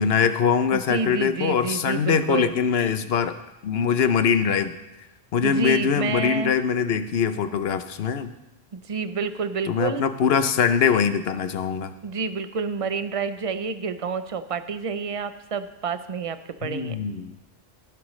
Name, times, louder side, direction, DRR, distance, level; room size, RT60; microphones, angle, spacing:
voice 1, 0.0-4.7 5.3-8.3 9.7-11.9 16.6-17.4, left 7 dB, 70° left, 11 dB, 1.0 m, -23 dB
voice 2, 0.7-2.5 5.4-6.5 8.7-10.1 12.0-17.0, right 5 dB, 40° right, 11 dB, 0.5 m, -29 dB
15.5 x 11.0 x 3.2 m, 0.94 s
omnidirectional pair, 1.1 m